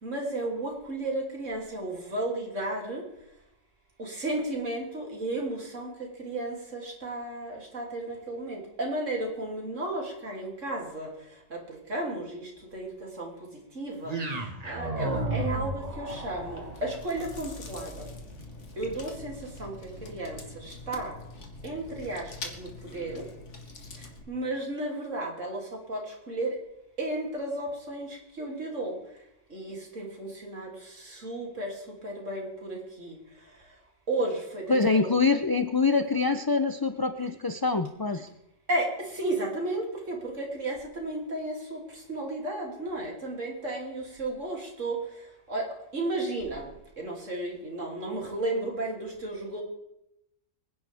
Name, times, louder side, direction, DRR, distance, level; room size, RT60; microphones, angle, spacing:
voice 1, 0.0-3.0 4.0-5.9 6.2-11.1 11.5-12.9 13.2-13.3 13.7-18.1 18.8-19.3 19.6-19.7 20.1-21.1 21.6-23.2 24.3-26.6 27.0-29.0 29.5-31.8 32.0-33.2 34.1-35.1 38.7-45.0 45.5-46.7 47.0-49.6, right 2 dB, 70° right, -1 dB, 3.3 m, -33 dB
sound 1, 14.0-22.3, right 2 dB, 30° right, 1.5 m, -37 dB
Chewing mastication, 16.1-24.2, left 3 dB, 65° left, 1.9 m, -44 dB
voice 2, 34.7-38.3, left 4 dB, 35° left, 7 dB, 0.3 m, -25 dB
24.0 x 10.5 x 3.5 m, 0.84 s
omnidirectional pair, 1.3 m